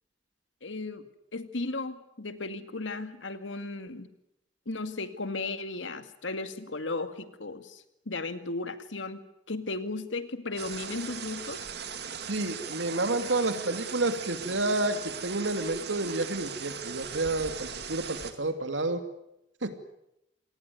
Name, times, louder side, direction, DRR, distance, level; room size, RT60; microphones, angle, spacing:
voice 1, 0.6-1.0 1.3-4.1 4.7-9.2 9.5-11.6, left 3 dB, 90° left, 9 dB, 2.2 m, -35 dB
sound 1, 10.6-18.3, right 7 dB, 60° right, 2.5 m, -39 dB
voice 2, 12.3-19.0 19.6-19.7, right 2 dB, 80° right, 8 dB, 2.7 m, -30 dB
28.0 x 19.5 x 9.6 m, 0.85 s
head